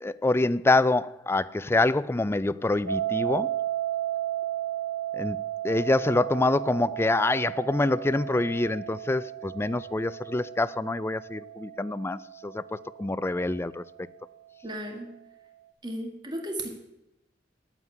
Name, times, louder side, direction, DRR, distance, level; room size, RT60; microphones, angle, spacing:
voice 1, 0.0-3.5 5.1-14.1, left 2 dB, 15° left, 0.4 m, -26 dB
sound 1, 2.9-13.8, right 12 dB, 80° right, 1.9 m, -34 dB
voice 2, 14.6-15.1 15.8-16.7, right 1 dB, 25° right, 1.9 m, -34 dB
9.5 x 9.0 x 9.2 m
head